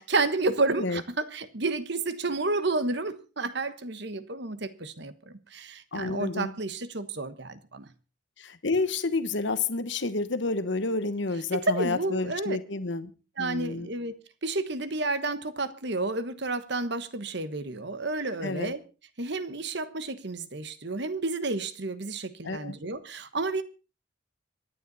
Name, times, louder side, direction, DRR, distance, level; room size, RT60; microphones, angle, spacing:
voice 1, 0.0-5.1 5.5-7.9 11.5-12.6 13.4-14.1 14.4-18.8 19.2-23.6, right 3 dB, 55° right, 1.3 m, -30 dB
voice 2, 5.9-6.5 8.4-13.1 13.4-13.9 18.4-18.7 22.4-22.8, left 3 dB, 60° left, 1.1 m, -30 dB
24.5 x 10.0 x 4.1 m
head